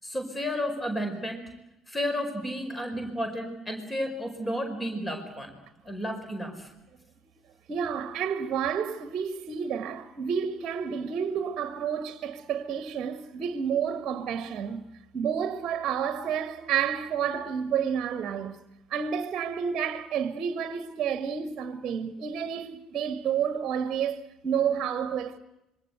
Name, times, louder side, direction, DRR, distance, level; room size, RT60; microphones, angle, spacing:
voice 1, 0.0-1.4 1.9-5.5 5.8-6.7, equal, 15° left, 4.9 m, -32 dB
voice 2, 7.7-14.8 15.1-18.6 18.9-25.4, right 7 dB, 40° right, 1.6 m, -30 dB
26.5 x 23.5 x 8.0 m
figure-of-eight pair, 55°, 0 cm